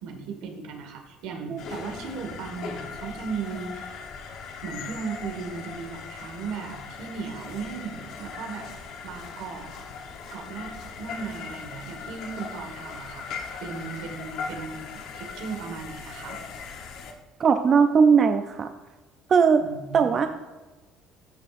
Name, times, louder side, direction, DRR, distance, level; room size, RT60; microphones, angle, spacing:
voice 1, 0.0-4.0 4.6-8.7 9.0-9.7 10.3-13.3 13.6-16.4 19.6-20.2, right 5 dB, 70° right, 4 dB, 1.6 m, -36 dB
sound 1, 1.6-17.1, left 5 dB, 55° left, 0.9 m, -39 dB
voice 2, 17.4-18.7 19.3-19.6 19.9-20.3, right 6 dB, 30° right, 7 dB, 0.3 m, -19 dB
14.0 x 6.2 x 2.5 m, 1.2 s
cardioid pair, 170°, 0 cm